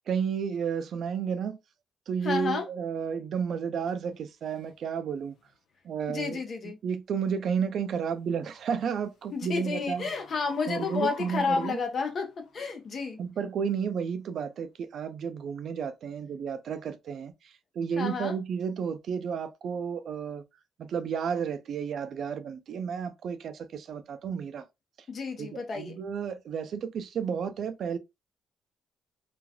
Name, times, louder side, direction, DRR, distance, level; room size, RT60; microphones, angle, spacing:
voice 1, 0.1-1.6 2.1-5.3 5.8-10.1 10.7-11.8 13.2-20.4 20.8-24.6 25.4-28.0, right 7 dB, 65° right, 0.4 m, -32 dB
voice 2, 2.2-2.7 6.1-6.8 9.3-13.2 18.0-18.4 25.1-26.0, left 4 dB, 50° left, 0.9 m, -31 dB
sound 1, 3.9-4.0 4.5-4.7 5.3-5.6 8.2-12.7, left 6 dB, 85° left, 0.7 m, -48 dB
3.1 x 2.4 x 2.2 m
cardioid pair, 90°, 0 cm